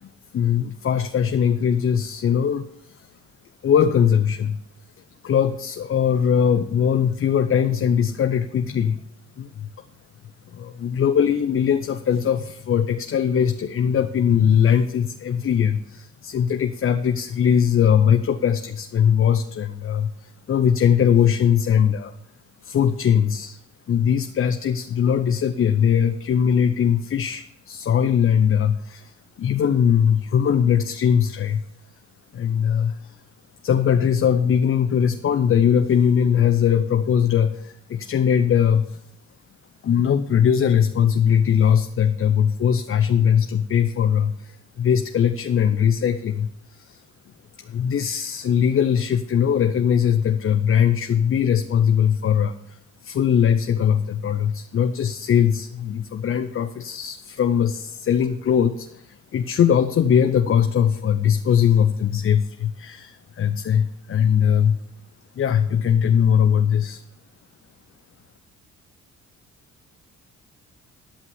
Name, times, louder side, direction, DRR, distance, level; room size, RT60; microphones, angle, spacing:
voice 1, 0.0-3.1 3.6-4.6 5.2-9.0 9.4-9.7 10.5-22.2 22.6-23.6 23.9-31.7 32.3-33.2 33.6-39.0 39.8-47.0 47.6-64.8 65.4-67.0, left 8 dB, 45° left, 8 dB, 0.7 m, -20 dB
11.5 x 5.5 x 7.2 m, 0.75 s
cardioid pair, 90°, 30 cm